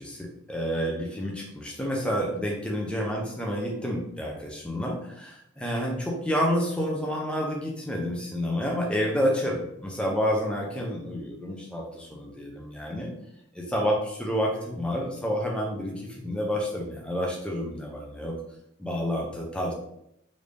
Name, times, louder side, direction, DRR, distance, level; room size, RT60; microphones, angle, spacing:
voice 1, 0.0-13.1 13.5-18.3 18.8-19.7, equal, 5° left, -2 dB, 0.5 m, -29 dB
3.4 x 2.6 x 3.3 m, 0.77 s
head